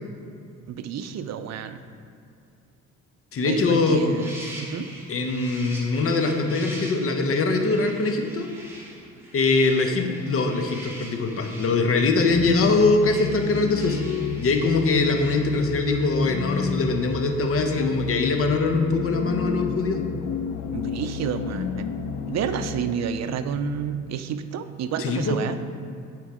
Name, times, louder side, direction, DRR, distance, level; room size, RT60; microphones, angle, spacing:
voice 1, 0.7-1.8 3.4-4.9 20.7-21.9 22.3-25.6, right 7 dB, 60° right, 10 dB, 0.5 m, -30 dB
voice 2, 3.3-4.0 5.1-8.5 9.3-14.0 14.4-20.0 25.0-25.4, left 3 dB, 45° left, 4 dB, 0.9 m, -22 dB
sound 1, 3.7-17.8, right 1 dB, 10° right, 1.6 m, -44 dB
sound 2, 12.3-23.0, left 7 dB, 90° left, 0.6 m, -31 dB
8.0 x 4.5 x 4.8 m, 2.4 s
cardioid pair, 90°, 30 cm